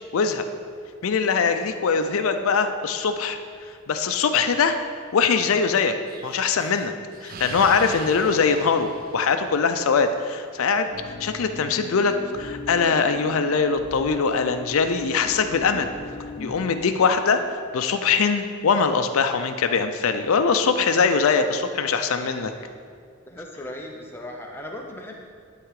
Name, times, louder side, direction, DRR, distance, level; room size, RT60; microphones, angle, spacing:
voice 1, 0.1-0.4 1.0-3.4 3.9-4.8 5.1-6.0 6.2-6.9 7.2-10.9 11.2-15.9 16.4-22.5, left 5 dB, 75° left, 8 dB, 0.5 m, -22 dB
Explosion, 6.1-9.9, right 4 dB, 40° right, 0.4 m, -41 dB
sound 1, 10.9-16.6, left 3 dB, 45° left, 0.8 m, -38 dB
voice 2, 22.0-22.7 23.3-25.2, left 1 dB, 10° left, 0 dB, 0.7 m, -38 dB
11.0 x 3.8 x 4.8 m, 2.1 s
head